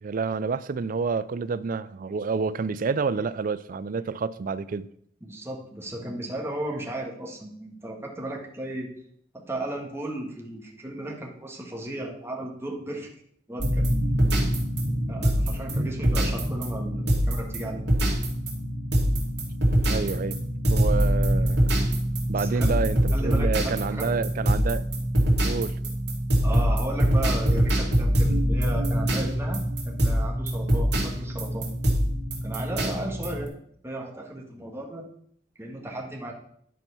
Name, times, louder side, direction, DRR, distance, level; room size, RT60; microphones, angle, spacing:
voice 1, 0.0-4.9 19.8-21.7 22.3-24.9 25.4-25.7, right 4 dB, 50° right, 0.4 m, -29 dB
voice 2, 5.2-8.9 9.5-13.1 13.5-14.3 15.1-17.8 22.4-22.8 23.1-24.1 26.4-31.7 32.4-33.5 33.8-35.0 35.6-36.3, right 1 dB, 15° right, 1.5 m, -35 dB
sound 1, 13.6-33.5, equal, 65° right, 2.5 m, -24 dB
11.0 x 4.5 x 5.7 m
head